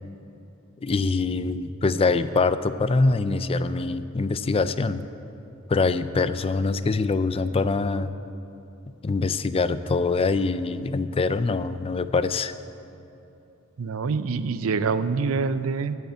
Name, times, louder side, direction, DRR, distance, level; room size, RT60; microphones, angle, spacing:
voice 1, 0.8-5.0 5.7-8.1 9.0-12.5, left 3 dB, 25° left, 13 dB, 0.4 m, -24 dB
voice 2, 13.8-16.0, right 4 dB, 90° right, 12 dB, 0.6 m, -25 dB
12.0 x 8.2 x 7.7 m, 2.9 s
head